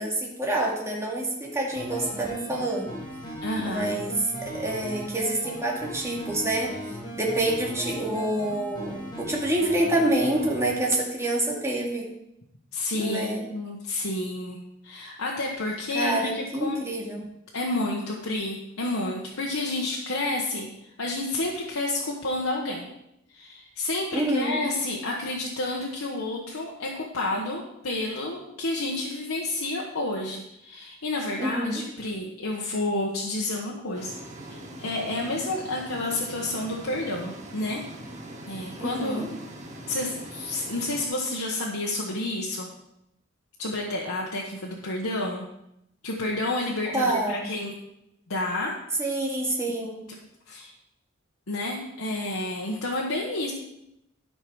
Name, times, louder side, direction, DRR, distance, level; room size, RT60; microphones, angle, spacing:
voice 1, 0.0-2.9 3.6-12.1 12.9-13.4 15.9-17.3 24.1-24.6 31.4-31.8 38.8-39.3 46.9-47.5 49.0-50.0, right 1 dB, 15° right, -2 dB, 2.2 m, -27 dB
sound 1, 1.7-10.7, equal, 20° left, 1.9 m, -37 dB
voice 2, 3.4-4.0 12.7-14.6 14.8-16.8 17.5-20.7 21.0-22.9 23.3-34.1 34.5-37.9 38.5-39.3 39.9-42.7 43.6-45.5 46.0-47.7 48.3-48.8 50.1-50.2 50.5-50.7 51.5-53.5, left 2 dB, 85° left, -2 dB, 1.2 m, -30 dB
sound 2, 33.9-41.1, right 1 dB, 35° right, 1.6 m, -42 dB
12.5 x 5.6 x 4.7 m, 0.82 s
head